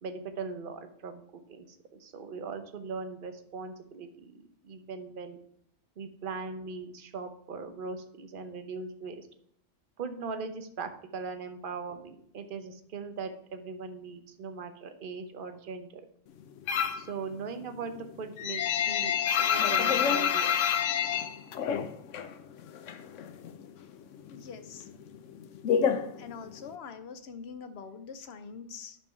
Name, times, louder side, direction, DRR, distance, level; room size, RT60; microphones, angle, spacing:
voice 1, 0.0-5.4 6.0-9.3 10.0-16.0 16.9-20.6, right 4 dB, 50° right, 8 dB, 1.0 m, -40 dB
sound 1, 16.7-17.1 17.5-22.3 22.6-23.7 23.9-26.8, left 8 dB, 85° left, 1.0 m, -28 dB
voice 2, 24.3-24.9 26.2-29.0, left 5 dB, 60° left, 9 dB, 1.0 m, -44 dB
10.0 x 4.6 x 5.6 m, 0.69 s
omnidirectional pair, 1.2 m